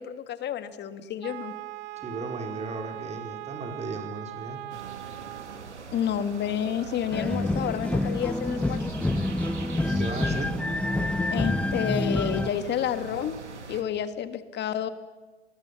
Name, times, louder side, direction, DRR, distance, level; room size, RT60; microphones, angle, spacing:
voice 1, 0.0-1.5 5.9-8.9 11.3-13.4 13.7-14.9, left 9 dB, 30° left, 11 dB, 1.8 m, -30 dB
Wind instrument woodwind instrument, 1.2-5.8, right 16 dB, 55° right, 1.2 m, -40 dB
voice 2, 2.0-4.6 9.8-10.5, right 3 dB, 20° right, 4 dB, 4.5 m, -35 dB
sound 1, 4.7-13.8, right 5 dB, 85° right, 3.0 m, -41 dB
sound 2, 7.1-12.5, left 2 dB, 5° left, 0.7 m, -27 dB
27.0 x 21.0 x 6.9 m, 1.3 s
hypercardioid pair, 100°, 34 cm